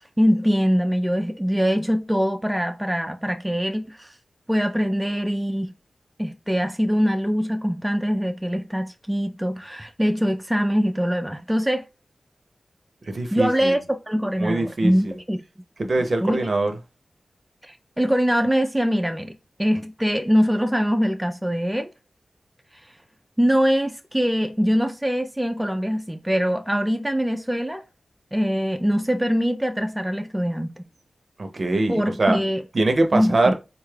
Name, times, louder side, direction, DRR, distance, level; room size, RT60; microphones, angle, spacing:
voice 1, 0.2-4.1 4.5-5.7 6.2-11.8 13.3-15.4 16.2-16.5 17.6-19.3 19.6-21.9 23.4-27.8 28.3-30.7 31.9-32.6 33.1-33.5, equal, 5° right, 0.4 m, -23 dB
voice 2, 13.1-13.7 14.4-15.1 15.8-16.7 31.4-32.4 32.7-33.5, right 2 dB, 50° right, 0.6 m, -22 dB
3.9 x 2.3 x 3.2 m
wide cardioid pair, 90°, 0 cm